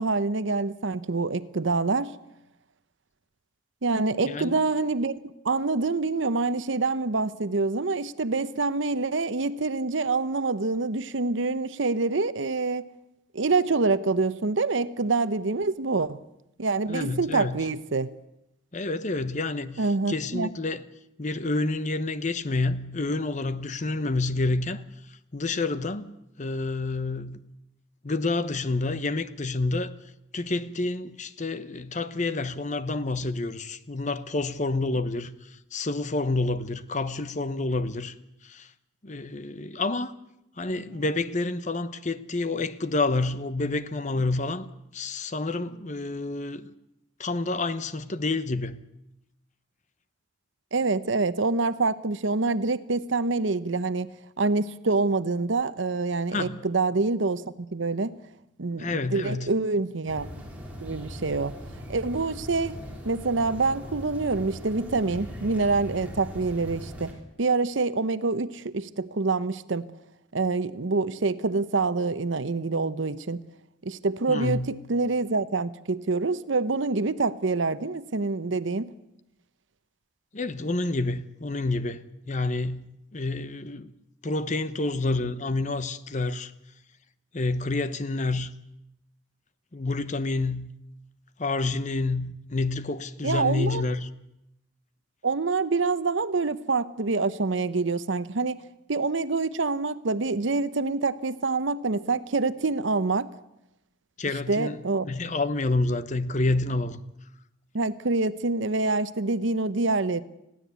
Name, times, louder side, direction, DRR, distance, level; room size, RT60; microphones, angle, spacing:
voice 1, 0.0-2.1 3.8-5.2 5.4-12.8 13.3-16.2 16.6-18.1 19.8-20.5 50.7-54.1 54.4-58.1 58.6-60.3 60.8-61.6 61.9-62.8 63.0-67.1 67.4-69.9 70.3-73.4 73.8-78.9 93.2-93.8 95.2-98.6 98.9-103.3 104.5-105.1 107.7-110.2, right 3 dB, 75° right, 0.8 m, -26 dB
voice 2, 4.2-4.6 16.9-17.6 18.7-20.9 21.2-24.8 25.3-26.1 26.4-27.4 28.0-29.9 30.3-35.3 35.7-38.1 38.5-38.7 39.0-40.1 40.6-46.7 47.2-48.8 56.3-56.6 58.8-59.5 74.3-74.8 80.3-83.9 84.2-86.5 87.3-88.5 89.7-90.7 91.4-94.1 104.2-104.8 105.0-107.0, left 2 dB, 40° left, 0.9 m, -28 dB
sound 1, 60.1-67.1, equal, 10° right, 3.8 m, -40 dB
20.5 x 15.5 x 8.3 m
head